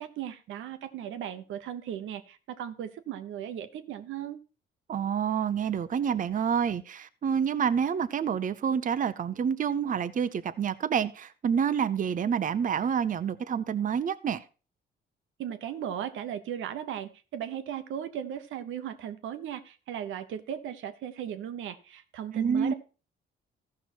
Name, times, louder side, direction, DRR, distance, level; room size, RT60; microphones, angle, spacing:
voice 1, 0.0-4.4 15.4-22.7, right 9 dB, 80° right, 10 dB, 1.1 m, -37 dB
voice 2, 4.9-14.4 22.3-22.7, right 7 dB, 40° right, 13 dB, 0.7 m, -28 dB
14.5 x 5.8 x 4.4 m, 0.35 s
cardioid pair, 90°, 20 cm